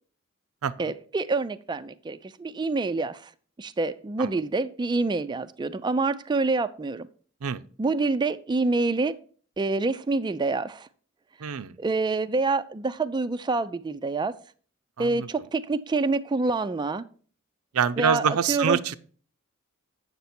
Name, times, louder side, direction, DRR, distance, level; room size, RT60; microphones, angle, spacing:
voice 1, 0.8-3.3 3.6-7.1 7.8-9.1 9.6-10.9 11.8-14.3 15.0-17.0 18.0-18.8, right 3 dB, 20° right, 0.3 m, -27 dB
voice 2, 11.4-11.8 15.0-15.3 17.7-18.9, right 7 dB, 80° right, 0.5 m, -25 dB
8.1 x 6.6 x 4.3 m
head